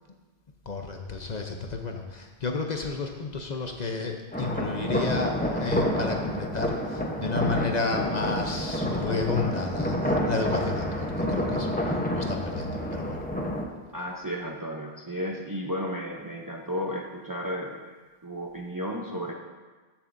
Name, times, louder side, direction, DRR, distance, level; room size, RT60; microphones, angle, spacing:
voice 1, 0.7-13.2, left 4 dB, 45° left, 3 dB, 0.8 m, -32 dB
sound 1, 4.3-13.6, equal, 10° left, 0.8 m, -29 dB
voice 2, 13.9-17.9 18.2-19.3, equal, 25° right, 0 dB, 0.6 m, -33 dB
14.0 x 7.0 x 2.6 m, 1.3 s
omnidirectional pair, 1.1 m